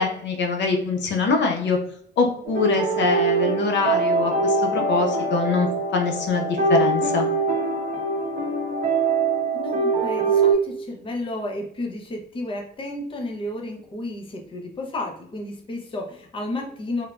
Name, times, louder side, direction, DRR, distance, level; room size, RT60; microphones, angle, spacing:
voice 1, 0.0-1.8 2.2-7.3, left 4 dB, 65° left, 3 dB, 0.6 m, -23 dB
sound 1, 2.5-10.5, right 3 dB, 45° right, 0.6 m, -23 dB
voice 2, 9.5-17.1, left 1 dB, 25° left, 1 dB, 0.6 m, -32 dB
3.2 x 2.1 x 2.4 m, 0.65 s
cardioid pair, 90°, 20 cm